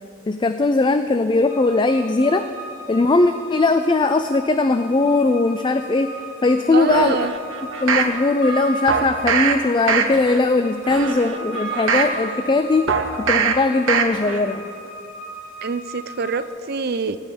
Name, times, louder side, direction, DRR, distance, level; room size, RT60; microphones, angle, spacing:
voice 1, 0.3-2.5 2.9-7.3 7.8-14.6, left 3 dB, 25° left, 9 dB, 0.4 m, -19 dB
sound 1, 1.4-16.5, right 2 dB, 45° left, 2.3 m, -38 dB
sound 2, 6.2-12.9, right 1 dB, 60° left, 3.1 m, -34 dB
voice 2, 6.7-7.3 15.6-17.2, right 4 dB, 50° right, 12 dB, 0.6 m, -25 dB
sound 3, 6.9-8.1 8.9-9.5 9.9-10.4 10.8-12.1 12.9-13.5 13.9-14.4 14.8-14.9, right 6 dB, 80° right, 1.1 m, -22 dB
16.0 x 5.6 x 9.9 m, 2.4 s
head